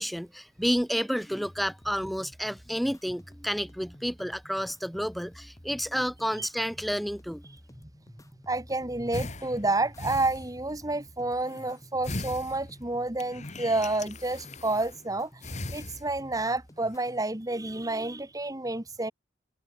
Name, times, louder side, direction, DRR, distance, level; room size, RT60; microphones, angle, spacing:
voice 1, 0.0-7.4, equal, ahead, 2.7 m, -30 dB
sound 1, 1.2-17.2, equal, 20° left, 7.0 m, -52 dB
voice 2, 8.5-19.1, right 2 dB, 20° right, 1.9 m, -30 dB
sound 2, 9.1-10.9 11.3-11.8 12.0-15.1 15.4-16.5 16.8-17.1, left 2 dB, 40° left, 2.1 m, -40 dB
head